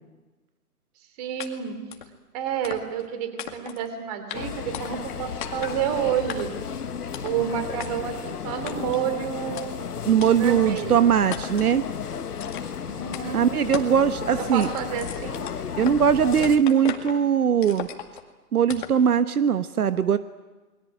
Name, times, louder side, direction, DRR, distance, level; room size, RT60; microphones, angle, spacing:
voice 1, 1.2-1.8 2.3-6.5 7.2-9.8 10.3-11.0 12.8-13.5 14.3-15.5, right 9 dB, 25° right, 9 dB, 3.3 m, -29 dB
sound 1, 1.4-1.5 1.9-2.1 2.6-3.1 3.4-3.9 4.3-4.4 4.7-5.1 5.4-5.8 6.3-6.7 7.1-7.4 7.8-7.9 8.7-9.0 9.6-9.7 10.2-10.3 10.8-10.9 11.3-11.7 12.4-12.8 13.1-13.3 13.7-14.0 14.3-16.0 16.3-17.2 17.6-18.2 18.7-19.0, left 9 dB, 35° left, 2.2 m, -37 dB
sound 2, 4.3-16.6, left 7 dB, 85° left, 1.7 m, -34 dB
voice 2, 10.0-11.9 13.3-14.7 15.8-17.9 18.5-20.2, right 8 dB, 75° right, 12 dB, 1.2 m, -20 dB
28.5 x 22.5 x 9.2 m, 1.2 s
hypercardioid pair, 165°, 45 cm